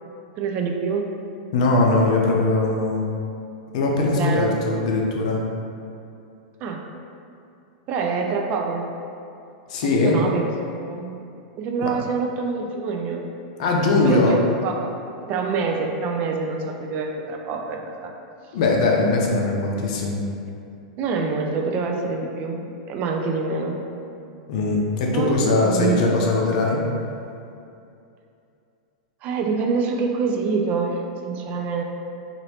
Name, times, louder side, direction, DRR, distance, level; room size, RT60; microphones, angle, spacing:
voice 1, 0.4-1.1 4.0-4.6 6.6-6.8 7.9-8.9 9.8-11.3 11.6-13.3 14.0-14.9 15.2-18.1 21.0-23.8 25.1-26.3 29.2-31.8, right 4 dB, 40° right, 2 dB, 0.3 m, -26 dB
voice 2, 1.5-3.1 3.7-5.4 9.7-10.2 11.8-11.9 13.6-14.4 18.5-20.2 24.5-26.8, left 2 dB, 65° left, -1 dB, 0.6 m, -20 dB
3.1 x 2.5 x 2.8 m, 2.6 s
hypercardioid pair, 125°, 4 cm